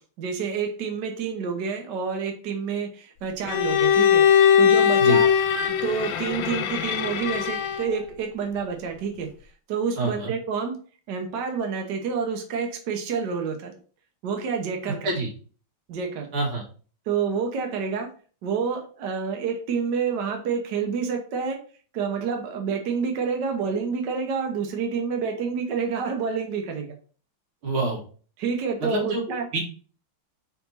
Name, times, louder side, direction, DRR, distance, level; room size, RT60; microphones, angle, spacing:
voice 1, 0.2-5.3 5.8-9.3 9.7-10.8 11.1-13.7 14.2-15.1 15.9-16.3 17.1-18.1 18.4-21.6 21.9-26.9 28.4-29.5, right 6 dB, 60° right, 4 dB, 1.5 m, -28 dB
Bowed string instrument, 3.5-8.0, left 8 dB, 70° left, 1.3 m, -20 dB
voice 2, 10.0-10.3 15.0-15.3 16.3-16.6 27.6-28.0 28.9-29.2 29.5-29.6, right 2 dB, 90° right, -1 dB, 2.8 m, -26 dB
5.2 x 4.6 x 4.1 m, 0.40 s
omnidirectional pair, 2.3 m